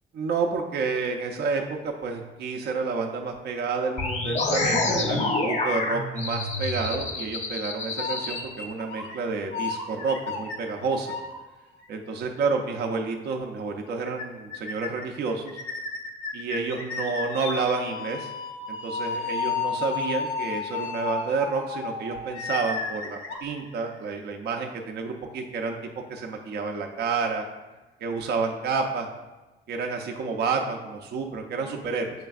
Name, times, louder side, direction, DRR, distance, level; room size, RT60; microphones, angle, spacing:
voice 1, 0.1-11.2 11.9-15.6 16.3-18.3 18.7-25.8 26.1-27.4 28.0-29.1 29.7-32.1, right 4 dB, 55° right, 2 dB, 0.5 m, -29 dB
sound 1, 4.0-8.4, left 3 dB, 35° left, 0.6 m, -27 dB
sound 2, 5.9-7.5 8.0-9.2 9.5-11.3 11.8-11.9 12.9-13.0 13.3-13.4 13.7-13.8 14.1-14.2 14.5-15.1 15.5-24.1, left 4 dB, 90° left, 0.6 m, -33 dB
6.4 x 3.3 x 2.4 m, 1.1 s
cardioid pair, 90°, 20 cm